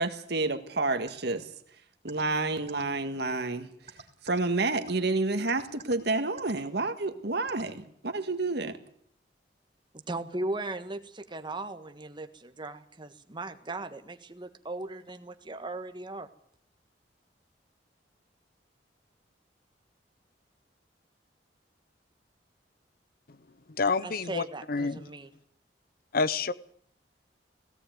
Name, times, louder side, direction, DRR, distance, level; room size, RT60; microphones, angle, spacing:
voice 1, 0.0-1.4 2.0-3.7 4.2-8.8, right 3 dB, 65° right, 8 dB, 1.9 m, -29 dB
sound 1, 1.1-1.2 2.1-2.2 2.7-2.8 3.9-4.4 4.8-4.9 5.5-5.9 6.4-6.5 7.5-7.6, right 5 dB, 40° right, 3.2 m, -45 dB
voice 2, 10.1-16.3 24.0-25.3, right 2 dB, 25° right, 8 dB, 1.5 m, -38 dB
voice 3, 23.8-25.0 26.1-26.5, left 4 dB, 55° left, 16 dB, 0.8 m, -28 dB
17.0 x 17.0 x 9.3 m, 0.65 s
head